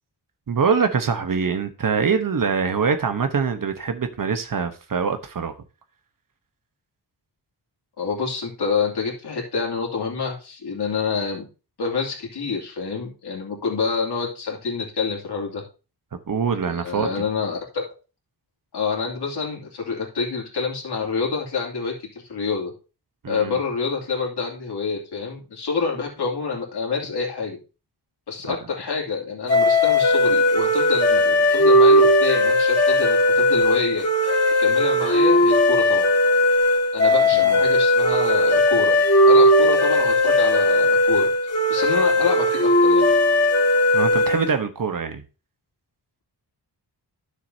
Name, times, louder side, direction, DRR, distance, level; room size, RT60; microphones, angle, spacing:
voice 1, 0.5-5.5 16.3-17.2 23.2-23.6 28.5-28.6 37.3-37.6 43.9-45.2, right 5 dB, 50° right, 1.1 m, -24 dB
voice 2, 8.0-11.4 11.8-15.6 16.7-17.8 18.7-22.7 23.3-27.6 28.3-34.1 34.6-36.1 36.9-41.3 41.7-43.1, left 5 dB, 70° left, 2.7 m, -27 dB
sound 1, 29.5-44.6, left 1 dB, 35° left, 2.0 m, -17 dB
12.0 x 6.6 x 2.8 m
wide cardioid pair, 130°, 42 cm